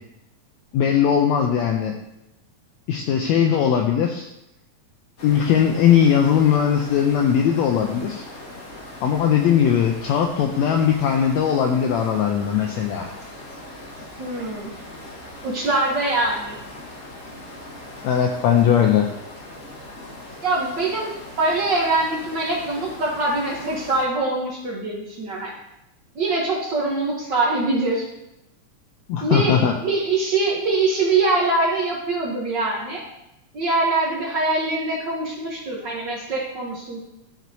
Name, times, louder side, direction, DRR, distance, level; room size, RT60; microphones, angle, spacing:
voice 1, 0.7-1.9 2.9-4.3 5.2-8.2 9.0-13.1 18.0-19.1 29.1-29.7, left 8 dB, 80° left, 2 dB, 1.7 m, -19 dB
sound 1, 5.2-24.1, left 1 dB, 40° left, 1.4 m, -40 dB
voice 2, 14.2-14.7 15.4-16.6 20.4-25.5 26.1-28.1 29.2-33.0 33.5-37.0, right 2 dB, 70° right, -3 dB, 1.0 m, -23 dB
12.5 x 6.2 x 2.7 m, 0.88 s
omnidirectional pair, 3.5 m